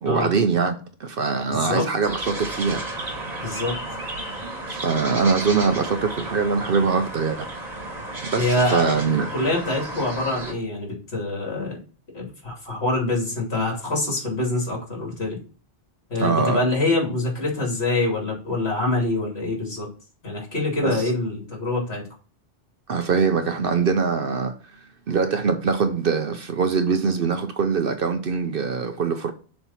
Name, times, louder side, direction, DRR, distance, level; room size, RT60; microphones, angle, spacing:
voice 1, 0.0-3.2 4.7-7.5 8.2-9.3 16.2-16.6 20.8-21.1 22.9-24.5 25.1-29.3, right 5 dB, 55° right, 0.8 m, -23 dB
voice 2, 1.5-1.9 3.4-3.8 8.4-8.8 9.3-11.8 12.1-15.4 16.1-19.9 20.2-22.0, left 2 dB, 60° left, 2.9 m, -25 dB
sound 1, 2.0-10.5, right 2 dB, 35° right, 1.4 m, -33 dB
7.0 x 3.3 x 5.7 m
omnidirectional pair, 1.2 m